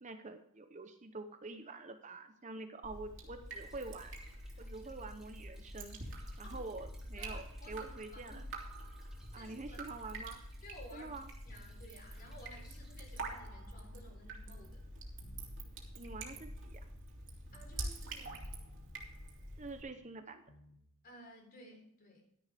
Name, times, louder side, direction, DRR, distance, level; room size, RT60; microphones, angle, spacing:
voice 1, 0.0-4.1 4.6-6.0 6.4-8.4 9.3-10.4 10.9-11.3 15.9-16.8 19.6-20.4, right 3 dB, 30° right, 8 dB, 0.8 m, -46 dB
Drip, 2.8-19.8, right 1 dB, 55° right, 2.6 m, -46 dB
Stream / Trickle dribble, 3.5-13.4, right 1 dB, ahead, 2.4 m, -66 dB
voice 2, 7.2-8.4 9.3-9.9 10.6-11.1 11.4-14.8 17.5-18.4 21.0-22.2, equal, 40° left, 1 dB, 4.0 m, -55 dB
sound 1, 9.2-11.9 12.2-14.3 14.5-18.0 18.2-20.8, equal, 75° left, 1.7 m, -63 dB
12.0 x 10.5 x 3.5 m, 0.72 s
head